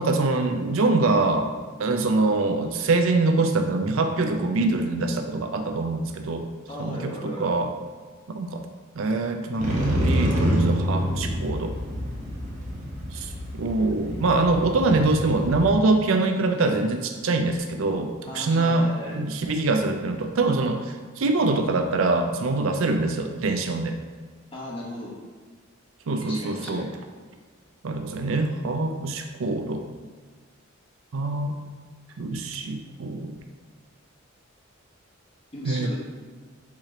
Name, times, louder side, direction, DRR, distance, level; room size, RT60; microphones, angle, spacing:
voice 1, 0.0-1.5 1.8-6.4 6.8-7.7 8.3-8.6 9.0-11.7 13.1-24.0 26.1-26.9 27.8-29.9 31.1-31.5 32.2-33.4 35.6-35.9, right 3 dB, 75° right, 5 dB, 0.5 m, -24 dB
voice 2, 6.7-7.5 18.3-19.2 24.5-25.2 26.2-26.9 35.5-36.0, left 1 dB, 25° left, -5 dB, 0.9 m, -36 dB
Motorcycle, 9.6-15.7, equal, 40° right, 0.8 m, -27 dB
4.8 x 2.9 x 3.7 m, 1.5 s
head